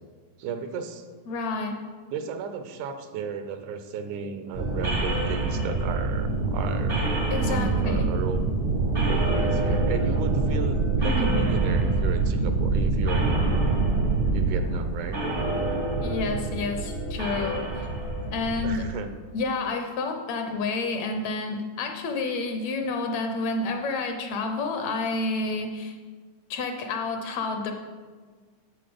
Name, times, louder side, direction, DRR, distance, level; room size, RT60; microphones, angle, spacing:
voice 1, 0.4-1.1 2.1-7.1 7.5-8.4 9.1-13.5 14.3-15.2 18.6-19.1, right 5 dB, 80° right, 8 dB, 2.2 m, -34 dB
voice 2, 1.3-1.8 7.3-8.1 11.0-11.3 16.0-17.9 18.3-18.9 19.3-26.0 26.5-27.7, left 3 dB, 70° left, 5 dB, 1.9 m, -29 dB
sound 1, 4.5-18.9, right 3 dB, 45° right, 0.6 m, -25 dB
9.8 x 7.2 x 5.1 m, 1.5 s
omnidirectional pair, 3.5 m